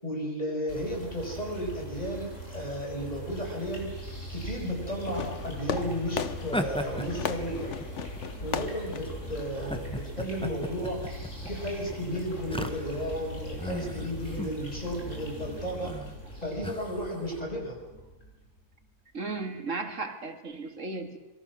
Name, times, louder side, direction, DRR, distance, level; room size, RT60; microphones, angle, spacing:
voice 1, 0.0-3.9 4.3-7.7 8.4-11.1 11.5-16.0 16.4-17.8, equal, 30° left, 0 dB, 6.2 m, -34 dB
sound 1, 0.7-18.9, equal, 90° left, 6.7 m, -40 dB
Fireworks, 5.0-10.1, left 7 dB, 70° left, 1.3 m, -37 dB
sound 2, 6.4-8.2 8.9-9.1 9.6-13.2 13.6-14.6 14.9-15.2 15.8-16.2 16.6-17.3, left 1 dB, 5° left, 1.3 m, -36 dB
voice 2, 19.1-21.2, right 3 dB, 80° right, 5 dB, 2.5 m, -35 dB
27.0 x 23.0 x 6.4 m, 1.1 s
omnidirectional pair, 1.3 m